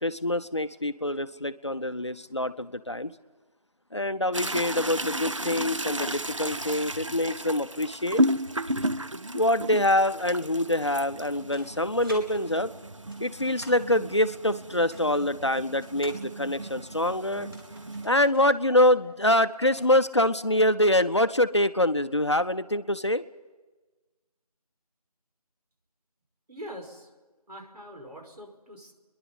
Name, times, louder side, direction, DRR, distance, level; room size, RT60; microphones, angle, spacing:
voice 1, 0.0-3.1 3.9-8.2 9.3-12.7 13.2-17.5 18.0-23.2, left 1 dB, 45° left, 11 dB, 0.6 m, -25 dB
sound 1, 4.3-18.1, right 1 dB, 50° right, 0.6 m, -33 dB
sound 2, 11.2-12.2 12.6-13.9 14.7-16.2 17.3-18.5 18.8-18.9 19.3-20.0, right 1 dB, 35° right, 3.6 m, -49 dB
voice 2, 26.5-27.1 27.5-28.9, equal, 85° right, 2 dB, 5.5 m, -43 dB
29.0 x 11.5 x 9.8 m, 1.2 s
figure-of-eight pair, 180°, 20 cm